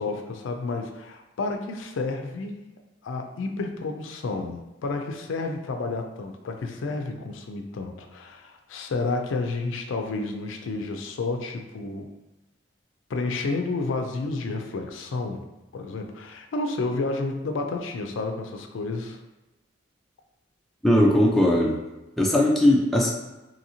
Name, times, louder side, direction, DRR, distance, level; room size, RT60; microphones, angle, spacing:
voice 1, 0.0-2.6 3.0-12.1 13.1-15.5 15.7-19.2, left 3 dB, 75° left, 4 dB, 0.4 m, -30 dB
voice 2, 20.8-21.8 22.2-23.1, left 1 dB, ahead, -3 dB, 0.4 m, -19 dB
2.8 x 2.7 x 2.7 m, 0.99 s
head